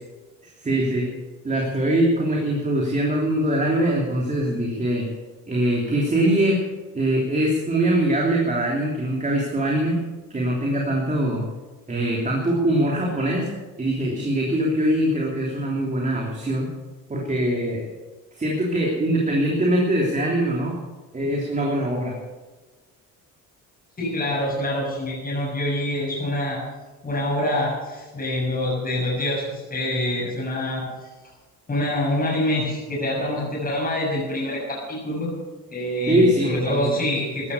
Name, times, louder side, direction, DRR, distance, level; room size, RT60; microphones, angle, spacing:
voice 1, 0.6-1.1 1.4-5.1 5.5-6.6 6.9-10.0 10.3-11.4 11.9-13.5 13.8-16.7 17.1-17.8 18.4-20.8 21.1-22.1 36.1-36.9, right 1 dB, 20° right, -2 dB, 3.2 m, -22 dB
voice 2, 24.0-26.6 27.0-31.1 31.7-35.3 35.7-37.5, left 1 dB, 25° left, -5 dB, 6.9 m, -26 dB
15.0 x 12.0 x 7.0 m, 1.3 s
cardioid pair, 125°, 35 cm